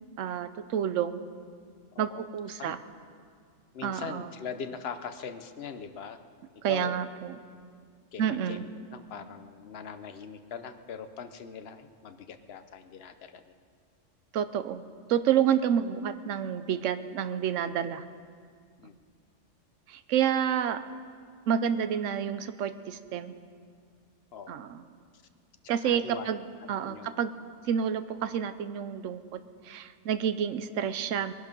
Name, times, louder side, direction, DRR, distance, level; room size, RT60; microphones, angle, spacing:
voice 1, 0.2-1.3 2.0-2.8 3.8-4.3 6.6-7.4 8.2-8.6 14.3-14.8 15.1-18.0 19.9-20.8 21.5-23.3 24.5-24.9 25.7-26.4 26.7-27.3 27.7-31.3, right 9 dB, 75° right, 12 dB, 1.0 m, -29 dB
voice 2, 1.9-2.3 2.6-2.8 3.7-6.2 6.7-7.0 8.1-8.6 8.9-13.5 18.8-18.9 24.3-24.7 25.6-26.3 26.8-27.2, left 6 dB, 55° left, 9 dB, 1.0 m, -41 dB
21.0 x 11.5 x 5.3 m, 2.1 s
omnidirectional pair, 1.3 m